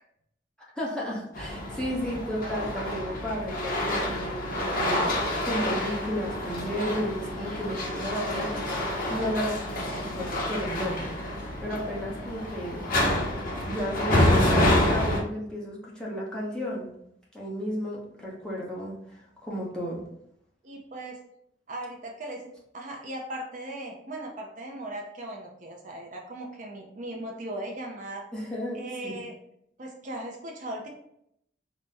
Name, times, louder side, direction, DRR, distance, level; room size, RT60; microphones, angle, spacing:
voice 1, 0.7-9.5 9.9-11.1 11.6-12.8 13.7-16.9 17.3-20.0 28.3-29.2, equal, 5° left, -5 dB, 0.9 m, -33 dB
sound 1, 1.3-15.2, left 1 dB, 50° left, 0.8 m, -28 dB
voice 2, 20.6-21.2 21.7-28.2 28.7-29.3 29.8-30.9, right 1 dB, 45° right, 0 dB, 0.6 m, -38 dB
4.0 x 2.1 x 3.4 m, 0.73 s
head